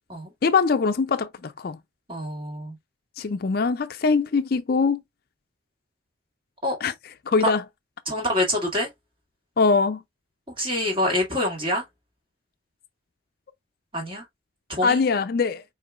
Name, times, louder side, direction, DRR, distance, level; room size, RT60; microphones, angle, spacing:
voice 1, 0.4-1.8 3.2-5.0 6.8-6.9 7.3-7.6 9.6-10.0 14.8-15.6, left 4 dB, 50° left, 0.4 m, -22 dB
voice 2, 2.1-2.8 6.6-6.8 7.4-7.5 8.1-8.9 10.6-11.8 13.9-14.2 14.7-15.0, left 1 dB, 25° right, 2.0 m, -26 dB
4.9 x 4.4 x 2.3 m
head